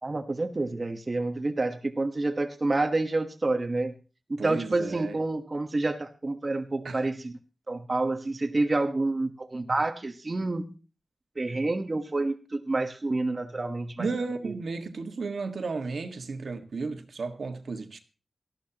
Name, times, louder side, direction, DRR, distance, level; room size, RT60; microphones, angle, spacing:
voice 1, 0.0-3.9 4.3-7.4 7.7-10.7 11.4-14.6, right 2 dB, 30° right, 1.2 m, -28 dB
voice 2, 4.4-5.2 6.8-7.0 14.0-18.0, right 4 dB, 65° right, 1.6 m, -33 dB
18.5 x 13.5 x 2.9 m
wide cardioid pair, 135°, 0 cm